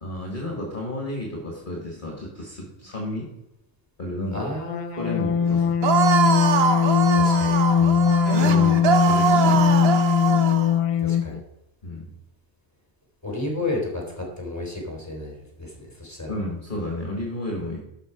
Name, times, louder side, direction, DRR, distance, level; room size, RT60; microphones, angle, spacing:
voice 1, 0.0-3.3 4.0-4.5 4.9-5.8 7.8-9.9 11.8-12.1 16.3-17.8, left 1 dB, 40° left, -1 dB, 2.0 m, -32 dB
voice 2, 4.3-5.2 7.1-7.6 11.0-11.4 13.2-16.3, left 2 dB, 15° left, -1 dB, 3.5 m, -32 dB
sound 1, 4.6-11.4, left 7 dB, 60° left, 0.3 m, -20 dB
sound 2, 5.8-10.7, right 6 dB, 60° right, 1.0 m, -23 dB
11.5 x 6.7 x 5.1 m, 0.85 s
omnidirectional pair, 1.3 m